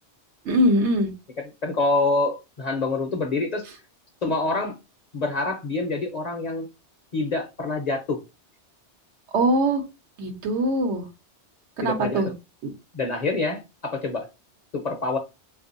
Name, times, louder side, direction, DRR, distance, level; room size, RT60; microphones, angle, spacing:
voice 1, 0.4-1.1 9.3-9.8 10.2-11.0 11.8-12.3, right 1 dB, 85° right, 1.1 m, -22 dB
voice 2, 1.4-3.7 4.2-4.8 5.1-6.7 7.1-8.2 11.8-12.3 12.9-14.3 14.7-15.2, left 3 dB, 50° left, 0.5 m, -26 dB
3.6 x 2.6 x 2.5 m
omnidirectional pair, 1.2 m